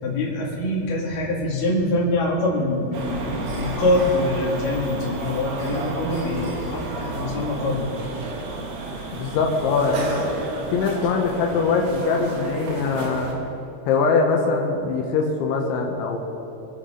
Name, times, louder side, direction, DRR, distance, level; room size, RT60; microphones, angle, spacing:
voice 1, 0.0-8.0, left 1 dB, 50° left, -4 dB, 3.8 m, -24 dB
sound 1, 2.9-13.3, right 2 dB, 60° right, 3.1 m, -31 dB
voice 2, 9.1-10.2 10.7-13.3 13.9-16.2, left 4 dB, 90° left, 1 dB, 3.5 m, -22 dB
26.0 x 9.5 x 3.9 m, 2.9 s
omnidirectional pair, 5.2 m